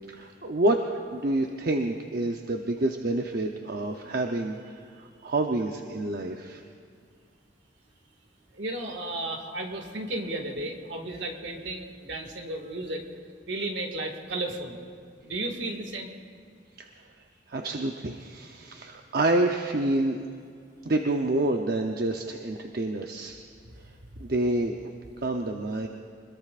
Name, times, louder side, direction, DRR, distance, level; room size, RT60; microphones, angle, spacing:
voice 1, 0.0-6.6 16.8-16.9 17.5-20.2 20.8-23.4 24.2-24.8 25.2-25.9, right 2 dB, 55° right, 3 dB, 0.7 m, -28 dB
voice 2, 8.5-13.0 13.5-14.8 15.2-16.1 23.6-23.7, right 2 dB, 75° right, 3 dB, 2.0 m, -34 dB
25.5 x 21.5 x 2.5 m, 2.3 s
head